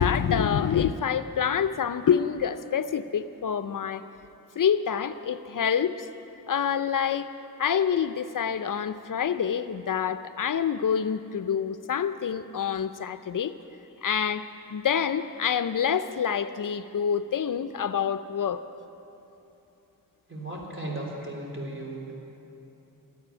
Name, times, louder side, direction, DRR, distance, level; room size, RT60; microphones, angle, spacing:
voice 1, 0.0-4.0 4.6-6.1 6.5-7.3 7.6-13.6 14.0-18.6, left 8 dB, 60° left, 11 dB, 0.5 m, -27 dB
voice 2, 20.3-22.2, right 1 dB, 35° right, -2 dB, 3.7 m, -36 dB
13.0 x 9.6 x 9.9 m, 3.0 s
cardioid pair, 60°, 36 cm